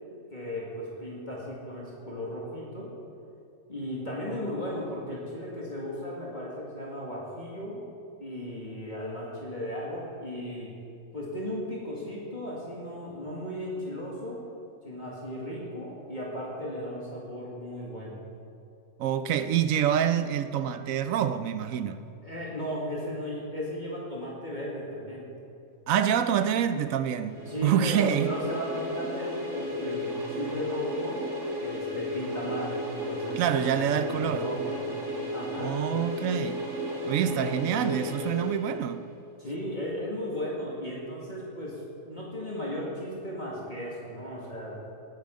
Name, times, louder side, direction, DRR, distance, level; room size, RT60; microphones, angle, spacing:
voice 1, 0.3-2.9 3.7-7.8 8.2-10.7 11.1-14.5 14.8-18.2 22.2-25.3 27.5-31.2 31.6-34.7 35.3-35.8 39.4-44.8, left 1 dB, 35° left, 2.2 m, -36 dB
voice 2, 19.0-22.0 25.9-27.4 27.6-28.3 33.4-34.5 35.6-36.6 37.0-39.1, right 9 dB, 75° right, 1.1 m, -26 dB
sound 1, 27.3-39.1, equal, 60° right, 2.6 m, -34 dB
18.5 x 9.2 x 5.2 m
omnidirectional pair, 1.4 m